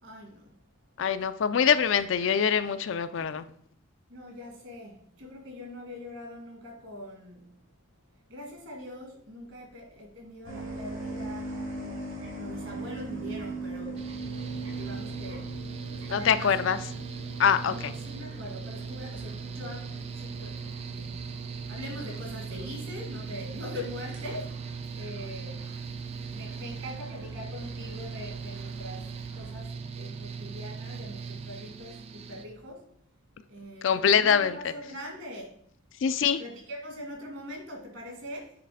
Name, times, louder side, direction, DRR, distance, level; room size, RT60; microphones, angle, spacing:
voice 1, 0.0-0.5 3.1-3.2 4.1-7.5 8.3-11.5 12.3-14.1 14.7-15.5 15.9-16.8 17.7-20.6 20.9-21.1 21.7-24.5 24.9-25.7 26.3-32.9 33.5-35.6 36.4-38.5, left 1 dB, 60° right, 1 dB, 2.0 m, -42 dB
voice 2, 1.0-3.4 16.1-16.8 17.4-17.7 33.8-34.7 36.0-36.4, left 7 dB, 60° left, 12 dB, 0.4 m, -24 dB
sound 1, 10.4-29.5, right 2 dB, 75° right, 2.5 m, -42 dB
Mechanical fan, 14.0-32.4, right 5 dB, 30° right, 0.4 m, -39 dB
7.9 x 3.2 x 4.9 m, 0.64 s
head